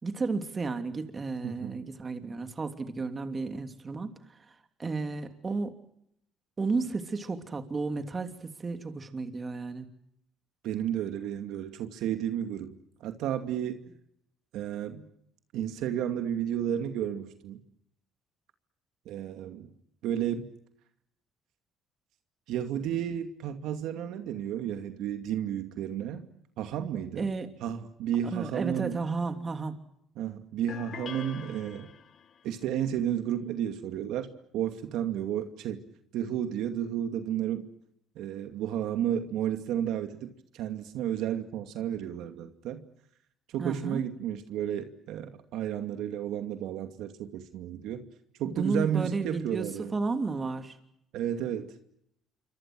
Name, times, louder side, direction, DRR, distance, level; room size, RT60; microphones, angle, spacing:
voice 1, 0.0-4.1 4.8-5.8 6.6-9.9 27.2-27.5 28.3-29.7 43.6-44.0 48.4-50.8, right 4 dB, 30° right, 7 dB, 3.0 m, -32 dB
voice 2, 1.4-1.8 10.6-13.8 14.5-15.0 15.5-17.6 19.1-19.7 20.0-20.5 22.5-26.2 26.6-27.3 27.6-28.9 30.2-31.9 32.4-35.8 36.1-37.7 38.2-42.8 43.5-48.0 48.4-49.9 51.1-51.7, right 10 dB, 75° right, 7 dB, 2.4 m, -32 dB
sound 1, 30.7-32.4, left 8 dB, 50° left, 1.8 m, -44 dB
28.0 x 25.0 x 6.2 m, 0.75 s
cardioid pair, 100°, 0 cm